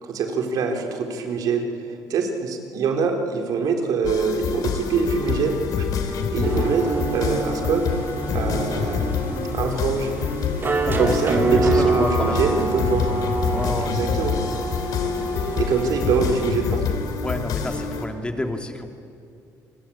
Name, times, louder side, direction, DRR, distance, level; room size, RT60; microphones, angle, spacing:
voice 1, 0.0-1.7 2.1-7.8 8.3-9.1 9.5-10.1 11.0-13.1 13.8-14.4 15.6-17.0, right 5 dB, 70° right, 4 dB, 3.6 m, -24 dB
sound 1, 4.0-18.1, left 6 dB, 70° left, 3.1 m, -26 dB
sound 2, 6.4-16.5, right 3 dB, 30° right, 2.9 m, -27 dB
voice 2, 10.8-11.2 11.5-12.4 13.5-13.9 17.2-18.9, left 1 dB, 15° left, 4 dB, 2.8 m, -29 dB
28.5 x 20.5 x 8.7 m, 2.5 s
cardioid pair, 90°, 7 cm